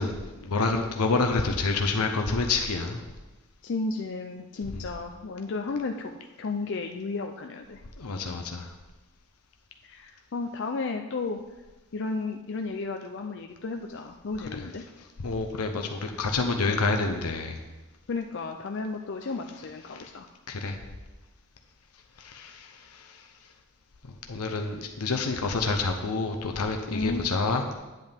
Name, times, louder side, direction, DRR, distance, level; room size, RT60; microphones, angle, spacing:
voice 1, 0.0-3.0 8.0-8.7 14.5-14.6 15.2-17.6 19.9-20.1 20.5-20.8 22.2-22.7 22.9-23.1 24.3-27.7, left 3 dB, 90° left, 4 dB, 0.8 m, -28 dB
voice 2, 3.6-7.8 9.8-11.4 11.9-14.8 15.7-15.9 18.1-20.3 26.9-27.3, left 3 dB, 55° left, 4 dB, 0.5 m, -33 dB
9.1 x 8.0 x 3.5 m, 1.1 s
head